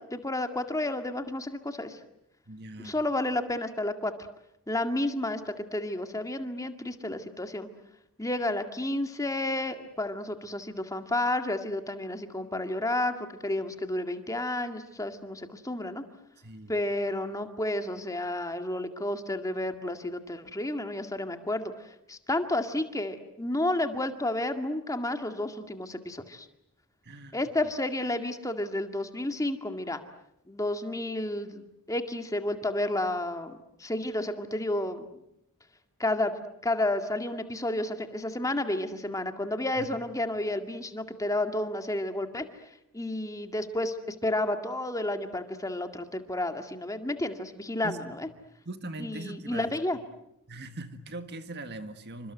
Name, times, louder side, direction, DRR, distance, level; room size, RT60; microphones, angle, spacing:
voice 1, 0.0-2.0 2.8-4.1 4.7-7.7 8.2-13.1 13.4-16.0 16.7-26.5 27.3-30.0 30.5-35.2 36.0-36.3 36.6-42.5 42.9-48.3 49.0-50.0, left 1 dB, 15° left, 7 dB, 2.0 m, -31 dB
voice 2, 2.5-3.0 16.4-16.7 27.0-27.4 39.8-40.0 47.8-48.0 48.6-49.7 50.5-52.3, right 2 dB, 50° right, 9 dB, 1.8 m, -40 dB
28.5 x 25.5 x 7.9 m, 0.77 s
head